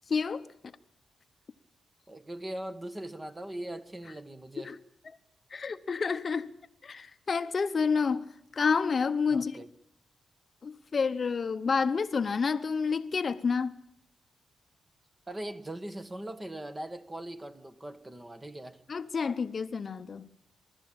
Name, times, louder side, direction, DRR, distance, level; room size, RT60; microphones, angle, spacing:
voice 1, 0.1-0.5 4.6-4.8 5.5-6.5 6.8-9.6 10.6-13.8 18.9-20.3, left 5 dB, 40° left, 0.9 m, -29 dB
voice 2, 2.1-4.7 9.3-9.7 15.3-18.8, right 1 dB, 15° right, 1.5 m, -40 dB
27.5 x 13.5 x 8.7 m
cardioid pair, 110°, 0 cm